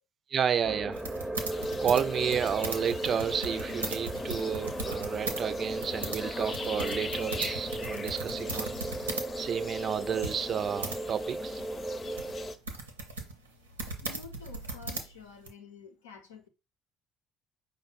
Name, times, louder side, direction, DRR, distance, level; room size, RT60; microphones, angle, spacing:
voice 1, 0.3-1.0 1.5-8.8 9.4-11.6, right 8 dB, 45° right, 0.4 m, -31 dB
sound 1, 0.6-12.5, right 1 dB, ahead, 0.6 m, -36 dB
sound 2, 0.9-5.4 5.7-9.3 9.6-9.7 10.2-11.0 11.6-15.5, right 2 dB, 85° right, 0.6 m, -38 dB
sound 3, 1.5-12.5, left 4 dB, 35° left, 0.6 m, -43 dB
voice 2, 14.0-16.5, left 6 dB, 80° left, 0.7 m, -49 dB
5.0 x 2.1 x 4.1 m
figure-of-eight pair, 55°, 0 cm